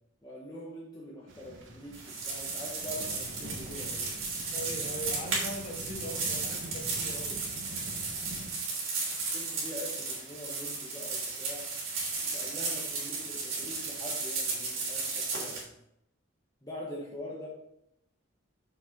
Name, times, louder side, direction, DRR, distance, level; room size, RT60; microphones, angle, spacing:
voice 1, 0.2-4.2 9.3-11.7 12.3-15.7 16.6-17.5, left 1 dB, 20° left, -5 dB, 1.3 m, -43 dB
sound 1, 1.3-8.5, right 1 dB, 65° right, 1.2 m, -45 dB
sound 2, 1.9-15.6, right 4 dB, 85° right, 3.3 m, -34 dB
voice 2, 4.5-7.4, equal, 40° left, -1 dB, 2.0 m, -41 dB
7.1 x 7.0 x 3.6 m, 0.81 s
head